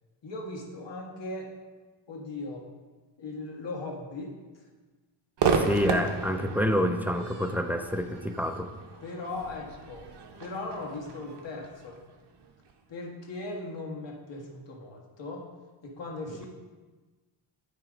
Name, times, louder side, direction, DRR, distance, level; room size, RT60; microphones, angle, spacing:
voice 1, 0.2-1.5 2.1-2.7 3.2-4.6 9.0-10.1 10.4-12.0 12.9-15.5 15.8-16.5, left 2 dB, 60° left, -1 dB, 1.6 m, -38 dB
Crowd / Fireworks, 5.4-12.7, right 5 dB, 55° right, 0.8 m, -33 dB
voice 2, 5.5-8.7, equal, 5° right, 6 dB, 0.3 m, -27 dB
9.4 x 3.3 x 5.1 m, 1.3 s
wide cardioid pair, 115°, 48 cm